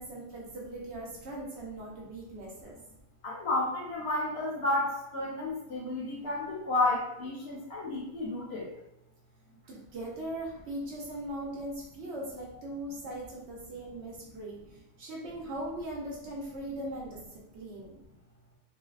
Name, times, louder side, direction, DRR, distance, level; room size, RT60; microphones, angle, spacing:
voice 1, 0.0-2.7 9.6-14.6 15.0-17.2 17.5-18.0, right 1 dB, 65° right, -3 dB, 0.8 m, -39 dB
voice 2, 3.2-8.7, left 2 dB, 60° left, -4 dB, 0.8 m, -31 dB
2.6 x 2.1 x 2.3 m, 0.87 s
omnidirectional pair, 1.3 m